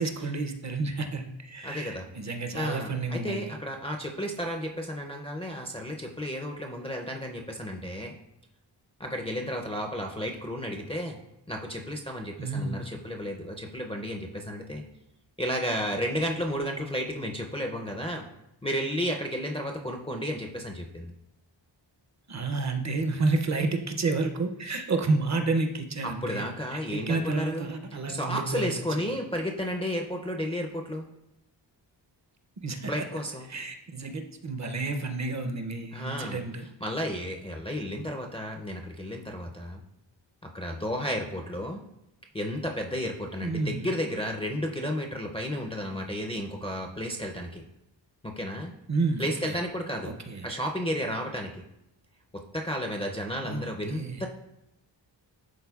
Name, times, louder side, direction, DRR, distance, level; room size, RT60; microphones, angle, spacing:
voice 1, 0.0-3.5 12.4-12.8 22.3-26.4 26.7-28.7 29.0-29.1 32.6-32.9 33.5-36.7 43.4-43.9 48.9-49.6 50.0-50.5 53.4-54.2, right 3 dB, 40° right, 6 dB, 0.5 m, -30 dB
voice 2, 1.6-2.1 2.5-8.1 9.0-11.2 11.5-14.8 15.4-18.3 18.6-21.1 26.0-27.7 28.1-31.1 32.9-33.5 35.9-36.4 36.8-39.8 40.4-41.8 42.3-47.6 48.2-48.7 49.2-50.1 50.4-51.6 52.3-54.3, equal, 15° left, 1 dB, 0.4 m, -32 dB
11.0 x 4.0 x 2.3 m, 0.84 s
wide cardioid pair, 165°, 44 cm